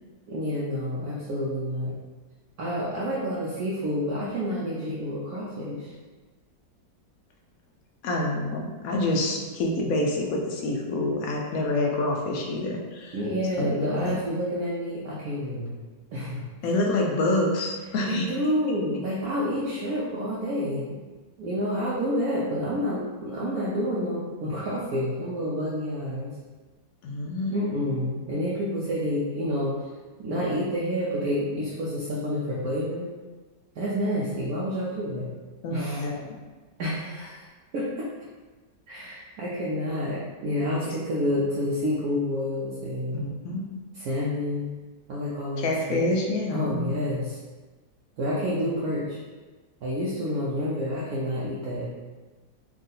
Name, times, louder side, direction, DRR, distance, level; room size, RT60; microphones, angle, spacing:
voice 1, 0.3-1.9 2.6-5.9 13.1-15.7 16.1-16.4 18.1-21.0 21.4-26.3 27.5-29.7 30.2-33.1 33.8-35.3 35.7-36.0 36.8-37.4 37.7-37.9 38.9-43.2 43.9-44.7 45.1-46.0 46.5-47.4 48.2-49.2 49.8-51.9, equal, 65° right, -7 dB, 1.0 m, -29 dB
voice 2, 8.0-13.2 13.6-14.2 16.6-18.3 27.0-27.5 35.6-36.4 40.9-41.0 43.1-43.7 45.6-46.9, left 2 dB, 70° left, 0 dB, 0.9 m, -27 dB
3.7 x 2.5 x 3.9 m, 1.3 s
omnidirectional pair, 1.9 m